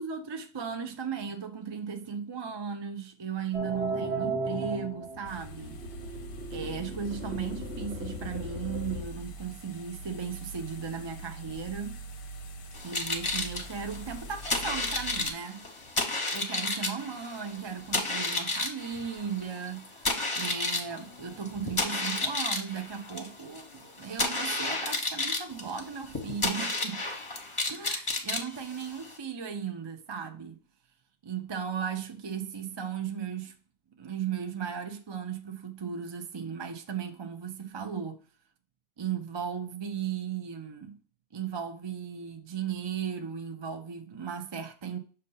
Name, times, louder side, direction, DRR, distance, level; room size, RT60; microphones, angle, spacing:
voice 1, 0.0-5.8 6.5-12.0 12.8-15.6 16.3-27.0 27.7-30.6 31.2-33.6 34.0-38.2 39.0-41.0 41.3-45.0, right 7 dB, 35° right, 0.5 m, -36 dB
sound 1, 3.5-9.0, right 1 dB, 80° right, 1.3 m, -35 dB
sound 2, 5.2-15.3, right 2 dB, 60° left, 0.8 m, -43 dB
sound 3, 12.7-29.2, left 2 dB, 30° left, 1.0 m, -32 dB
6.5 x 2.7 x 5.4 m
omnidirectional pair, 1.1 m